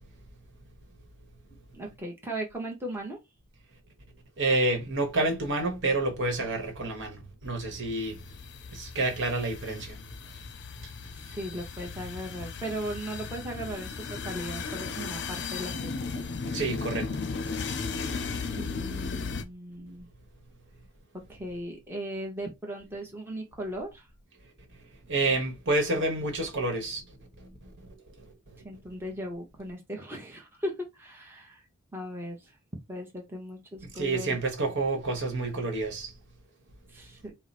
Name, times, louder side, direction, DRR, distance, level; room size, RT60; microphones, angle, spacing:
voice 1, 1.7-3.2 11.2-15.7 18.5-20.1 21.3-24.1 28.6-31.6 31.9-32.5 32.9-34.4 36.9-37.3, right 1 dB, 10° right, 0.9 m, -37 dB
voice 2, 4.4-8.2 8.7-10.4 10.8-10.9 11.3-11.4 16.5-17.2 24.7-28.6 34.0-36.1, right 2 dB, 55° right, 1.2 m, -29 dB
sound 1, 7.4-19.4, left 4 dB, 55° left, 0.6 m, -36 dB
4.6 x 2.1 x 4.2 m
head